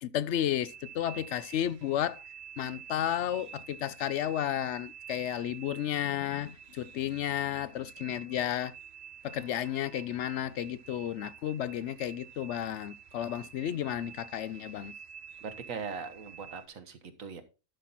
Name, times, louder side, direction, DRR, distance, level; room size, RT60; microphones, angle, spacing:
voice 1, 0.0-2.2 2.6-8.7 9.2-14.9, left 11 dB, 65° left, 0.8 m, -32 dB
sound 1, 0.6-16.7, right 8 dB, 55° right, 1.0 m, -49 dB
voice 2, 15.4-17.4, right 5 dB, 75° right, 1.5 m, -40 dB
12.0 x 5.8 x 4.0 m
omnidirectional pair, 1.4 m